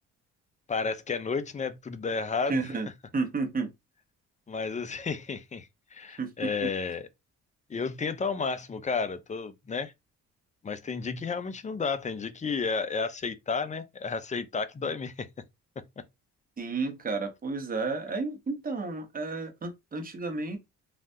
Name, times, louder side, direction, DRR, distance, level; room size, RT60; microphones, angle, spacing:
voice 1, 0.7-2.7 4.5-7.1 7.7-9.9 10.6-15.3 15.8-16.0, left 5 dB, 25° left, 0.5 m, -32 dB
voice 2, 2.5-3.7 6.2-6.7 16.6-20.6, right 3 dB, 30° right, 1.0 m, -32 dB
3.3 x 2.4 x 2.7 m
cardioid pair, 90°, 30 cm